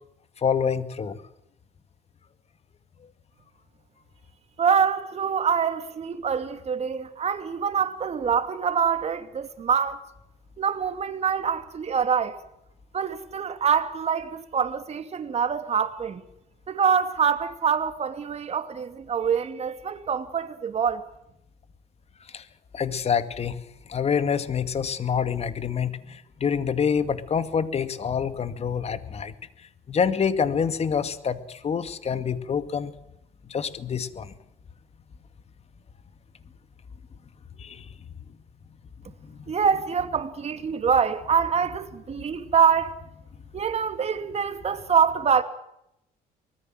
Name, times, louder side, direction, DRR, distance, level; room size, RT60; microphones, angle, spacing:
voice 1, 0.4-1.2 22.3-22.4 22.7-23.6 23.9-29.3 29.9-32.9 33.5-34.3 37.6-37.9, left 7 dB, 40° left, 2.2 m, -26 dB
voice 2, 4.6-10.0 10.6-12.4 12.9-16.2 16.7-21.1 39.5-43.0 43.5-45.4, right 7 dB, 40° right, 2.6 m, -25 dB
24.5 x 20.5 x 7.7 m
cardioid pair, 110°, 17 cm